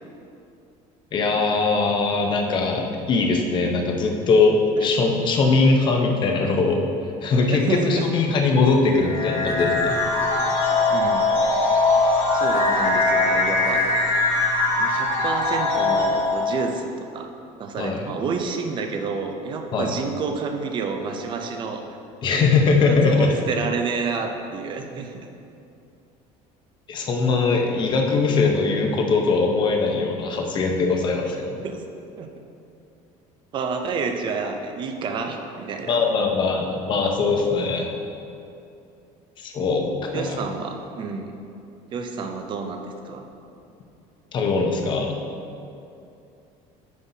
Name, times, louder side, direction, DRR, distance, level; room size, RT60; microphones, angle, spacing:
voice 1, 1.1-6.8 7.2-9.9 17.8-18.1 19.7-19.9 22.2-23.3 26.9-31.6 35.9-37.9 39.4-40.4 44.3-45.1, left 4 dB, 35° left, 2 dB, 0.8 m, -21 dB
voice 2, 7.5-8.0 10.9-11.3 12.3-13.8 14.8-17.3 17.6-21.8 22.8-25.2 31.6-31.8 32.2-32.3 33.5-36.0 40.1-41.4 41.9-43.3, right 5 dB, 35° right, 5 dB, 0.6 m, -29 dB
sound 1, 9.0-16.6, left 3 dB, 55° left, 1.3 m, -21 dB
9.5 x 5.5 x 2.7 m, 2.6 s
cardioid pair, 160°, 14 cm